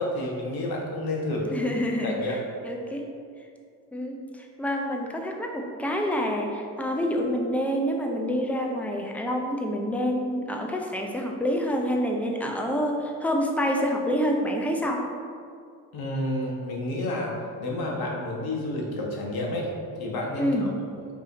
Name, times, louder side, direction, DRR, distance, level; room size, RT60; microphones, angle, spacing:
voice 1, 0.0-1.7 2.0-2.4 15.9-19.7 20.0-20.7, left 1 dB, 45° left, -1 dB, 1.1 m, -30 dB
voice 2, 1.5-2.4 2.6-3.1 3.9-15.0 20.4-20.7, equal, 5° left, 1 dB, 0.3 m, -27 dB
4.7 x 2.7 x 3.9 m, 2.3 s
figure-of-eight pair, 50°, 50 cm